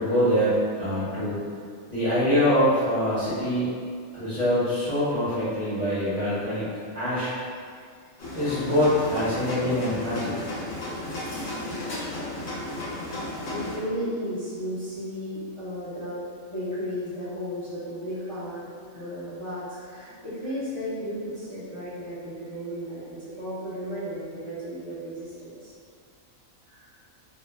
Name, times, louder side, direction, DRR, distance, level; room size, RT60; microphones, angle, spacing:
voice 1, 0.0-1.4 1.9-3.7 4.1-7.3 8.4-10.3, equal, 40° right, -14 dB, 0.7 m, -24 dB
sound 1, 8.2-13.8, left 1 dB, 65° left, 1.0 m, -34 dB
voice 2, 13.5-16.2 16.5-18.6 18.9-25.7, equal, 35° left, -14 dB, 0.6 m, -34 dB
2.7 x 2.0 x 2.2 m, 2.1 s
omnidirectional pair, 1.4 m